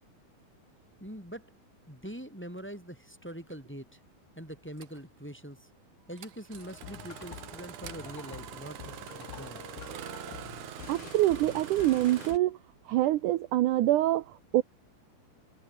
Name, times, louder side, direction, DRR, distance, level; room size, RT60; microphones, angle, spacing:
voice 1, 1.0-1.5 1.9-4.0 4.3-5.7 6.1-9.6, equal, 5° left, 3.6 m, -43 dB
Engine starting, 3.5-3.6 4.8-5.0 6.2-12.3, right 11 dB, 60° right, 2.7 m, -44 dB
sound 1, 6.5-12.4, left 14 dB, 70° left, 2.7 m, -47 dB
voice 2, 10.9-12.6 12.9-14.6, right 15 dB, 75° right, 1.9 m, -25 dB
omnidirectional pair, 4.5 m